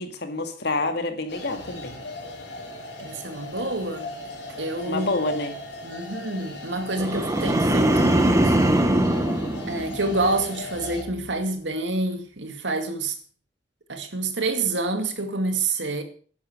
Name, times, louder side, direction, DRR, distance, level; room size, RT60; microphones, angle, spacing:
voice 1, 0.0-2.0 4.9-5.5, left 2 dB, 65° left, 2.2 m, -28 dB
sound 1, 1.3-11.0, left 2 dB, 90° left, 4.6 m, -38 dB
voice 2, 3.0-4.1 4.6-5.1 5.8-8.6 9.7-13.2 13.9-16.0, right 2 dB, 75° right, 2.2 m, -27 dB
sound 2, 7.0-10.4 10.8-11.2, right 1 dB, 15° right, 1.3 m, -22 dB
11.0 x 10.5 x 6.5 m
head